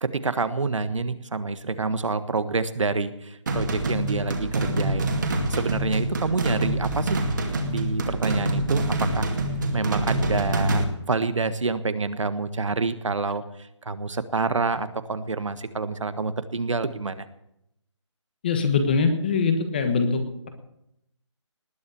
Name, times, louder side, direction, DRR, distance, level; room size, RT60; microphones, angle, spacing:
voice 1, 0.0-5.2 5.5-7.2 7.7-8.8 9.1-9.3 9.7-13.4 13.8-17.3, right 3 dB, 80° right, 12 dB, 1.5 m, -27 dB
sound 1, 3.5-10.8, right 1 dB, 40° right, 2.3 m, -26 dB
voice 2, 18.4-20.5, left 4 dB, 20° left, 7 dB, 1.3 m, -23 dB
19.5 x 7.3 x 8.4 m, 0.80 s
hypercardioid pair, 175°, 16 cm